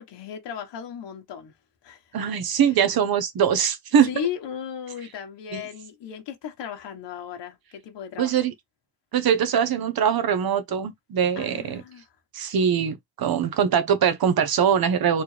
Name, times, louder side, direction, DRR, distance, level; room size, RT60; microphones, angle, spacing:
voice 1, 0.0-1.5 1.8-2.3 4.0-8.4 11.3-12.1, left 8 dB, 85° left, 1.6 m, -36 dB
voice 2, 2.1-4.1 5.5-5.6 8.2-8.5 9.1-11.8 12.3-15.2, right 8 dB, 60° right, 1.0 m, -22 dB
4.4 x 3.4 x 3.4 m
cardioid pair, 130°, 41 cm